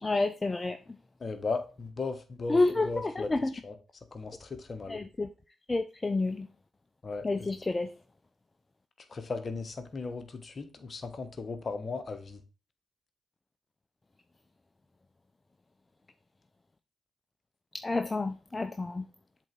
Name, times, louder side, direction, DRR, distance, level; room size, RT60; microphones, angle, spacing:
voice 1, 0.0-0.8 2.5-3.5 4.9-5.3 5.7-6.5 7.2-7.9 17.7-19.1, left 2 dB, 30° left, 0.5 m, -29 dB
voice 2, 1.2-3.3 3.6-3.7 4.1-5.0 7.0-7.5 9.1-12.4, left 4 dB, 45° left, 1.3 m, -37 dB
7.6 x 4.0 x 4.5 m
hypercardioid pair, 45°, 0 cm